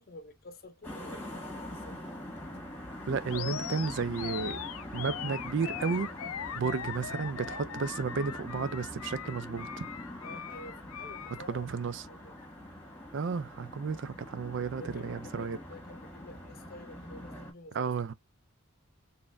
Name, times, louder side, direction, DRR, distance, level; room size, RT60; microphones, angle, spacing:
voice 1, 0.0-2.0 10.2-11.7 12.0-12.5 14.8-17.9, left 2 dB, 45° left, 0.7 m, -50 dB
sound 1, 0.8-17.5, left 1 dB, 10° left, 1.6 m, -44 dB
voice 2, 3.1-4.6 4.9-6.1 6.5-9.9 11.5-12.1 13.1-15.6 17.7-18.1, right 5 dB, 55° right, 0.4 m, -33 dB
Animal, 3.3-11.5, left 9 dB, 75° left, 0.4 m, -40 dB
4.2 x 3.5 x 2.6 m
head